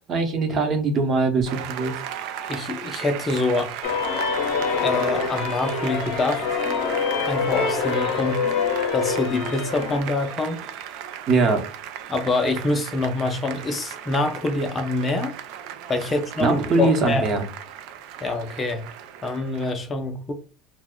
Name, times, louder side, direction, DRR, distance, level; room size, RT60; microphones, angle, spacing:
voice 1, 0.1-1.9 11.3-11.6 16.4-17.4, right 3 dB, 40° right, 0.8 m, -21 dB
Applause, 1.5-19.7, right 10 dB, 65° right, 0.4 m, -37 dB
voice 2, 2.5-3.8 4.8-6.5 7.2-8.5 8.9-10.7 12.1-15.4 15.9-17.3 18.2-18.9 19.2-20.3, left 2 dB, 25° left, 0.5 m, -25 dB
sound 1, 3.8-10.0, left 5 dB, 70° left, 0.6 m, -25 dB
2.4 x 2.1 x 3.6 m
supercardioid pair, 120°, 0 cm